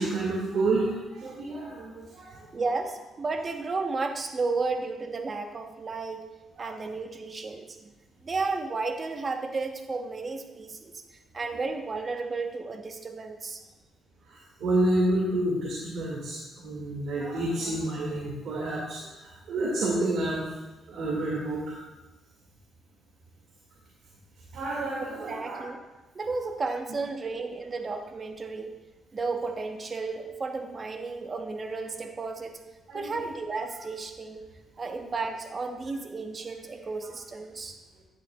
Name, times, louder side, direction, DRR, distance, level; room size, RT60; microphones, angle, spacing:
voice 1, 0.0-2.4 6.6-6.7 14.3-20.4 20.9-21.8 24.5-25.6 32.9-33.3, right 2 dB, 70° right, -4 dB, 1.9 m, -29 dB
voice 2, 2.5-6.3 6.6-7.7 8.2-11.0 11.3-13.6 25.0-25.8 26.1-28.7 29.1-32.6 32.9-34.4 34.8-37.8, right 3 dB, 35° right, 5 dB, 0.9 m, -33 dB
10.5 x 9.4 x 2.2 m, 1.1 s
cardioid pair, 90°, 0 cm